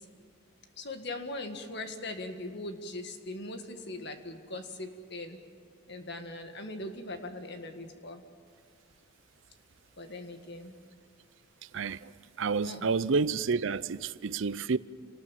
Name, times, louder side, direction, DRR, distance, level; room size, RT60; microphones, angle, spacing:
voice 1, 0.8-5.4 5.9-8.2 10.0-10.7 12.6-12.9, left 2 dB, 55° left, 1.9 m, -40 dB
voice 2, 11.7-12.1 12.4-14.8, right 4 dB, 65° right, 0.5 m, -29 dB
28.5 x 19.0 x 7.5 m
head